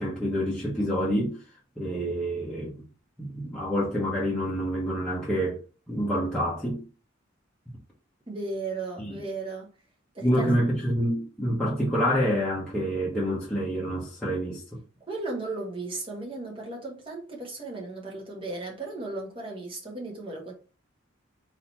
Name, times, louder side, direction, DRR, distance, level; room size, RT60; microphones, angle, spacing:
voice 1, 0.0-1.4 1.8-2.7 3.2-5.6 5.9-6.8 9.0-9.2 10.2-14.8, equal, 5° left, 1.1 m, -27 dB
voice 2, 8.3-9.7 10.1-10.5 15.1-20.5, right 3 dB, 25° right, 1.5 m, -35 dB
3.9 x 2.9 x 4.3 m
head